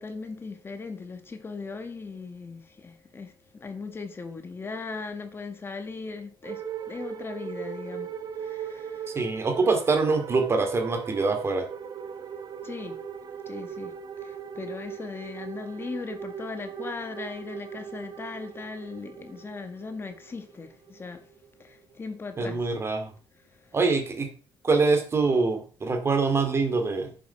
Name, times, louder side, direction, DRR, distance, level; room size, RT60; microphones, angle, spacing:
voice 1, 0.0-9.2 12.6-13.0 13.4-21.3 21.6-22.7 23.6-23.7, left 4 dB, 25° left, 1.7 m, -38 dB
sound 1, 6.4-22.1, right 7 dB, 40° right, 1.2 m, -39 dB
voice 2, 9.1-11.6 22.4-23.1 23.7-24.3 24.6-27.1, right 3 dB, 25° right, 2.3 m, -24 dB
10.5 x 7.6 x 5.9 m
cardioid pair, 160°, 10 cm